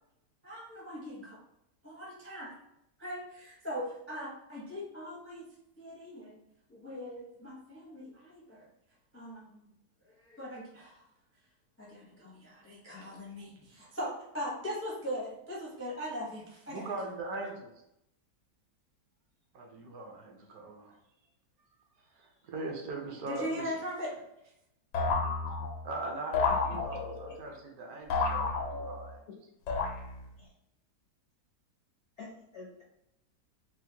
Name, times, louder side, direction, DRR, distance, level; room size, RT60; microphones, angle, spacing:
voice 1, 0.4-1.4 1.8-2.6 3.0-5.5 5.8-6.4 6.7-8.7 9.1-9.6 10.2-11.0 11.8-16.9 17.4-17.5 23.3-24.1, equal, 20° left, -5 dB, 0.4 m, -40 dB
voice 2, 16.7-17.7 19.5-21.0 22.0-23.8 25.5-25.6 25.8-29.2, right 2 dB, 70° right, 1 dB, 1.1 m, -40 dB
sound 1, 24.9-25.9 26.3-27.3 28.1-29.1 29.7-30.4, left 4 dB, 85° left, 1.4 m, -31 dB
voice 3, 26.7-27.3 29.3-29.4 30.4-30.5 32.2-32.8, left 3 dB, 65° left, -3 dB, 0.7 m, -48 dB
4.3 x 2.1 x 2.8 m, 0.83 s
omnidirectional pair, 1.8 m